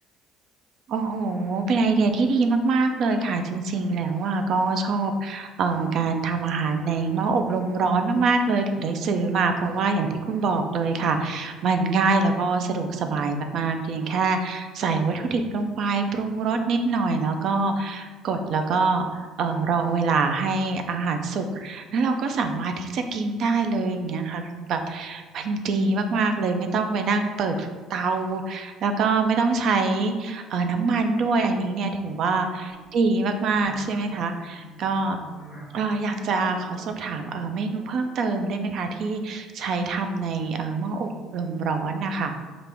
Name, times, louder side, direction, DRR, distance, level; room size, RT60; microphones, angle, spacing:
voice 1, 0.9-35.2 35.7-42.3, right 4 dB, 40° right, 6 dB, 0.4 m, -25 dB
sound 1, 30.0-39.1, equal, 20° right, 0.7 m, -49 dB
5.8 x 2.4 x 3.4 m, 1.3 s
cardioid pair, 180°, 0 cm